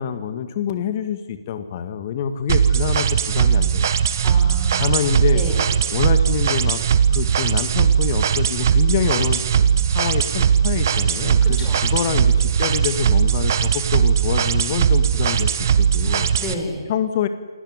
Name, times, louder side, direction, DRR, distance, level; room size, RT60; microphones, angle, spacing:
voice 1, 0.0-4.2 4.8-5.4 5.9-6.8 7.1-15.5 15.8-16.3 16.9-17.3, left 8 dB, 35° left, 10 dB, 2.0 m, -26 dB
sound 1, 2.5-16.5, right 8 dB, 45° right, 1.6 m, -19 dB
voice 2, 4.2-5.7 11.4-11.8 16.4-16.8, left 2 dB, 15° left, 1 dB, 6.9 m, -32 dB
29.0 x 18.5 x 9.8 m, 1.4 s
figure-of-eight pair, 145°, 2 cm